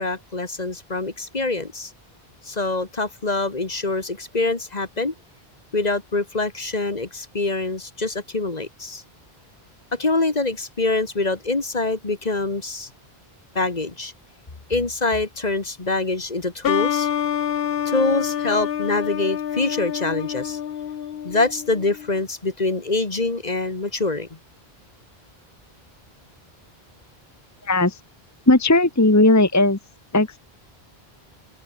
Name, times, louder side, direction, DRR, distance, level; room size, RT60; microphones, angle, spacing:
voice 1, 0.0-1.9 2.4-5.1 5.7-9.0 9.9-12.9 13.6-14.1 14.7-17.1 17.9-20.6 21.2-24.3, left 3 dB, 40° left, 1.9 m, -25 dB
sound 1, 16.6-22.1, left 9 dB, 65° left, 0.9 m, -27 dB
voice 2, 27.6-28.0 28.5-29.8 30.1-30.4, left 2 dB, 15° left, 1.2 m, -17 dB
omnidirectional pair, 1.1 m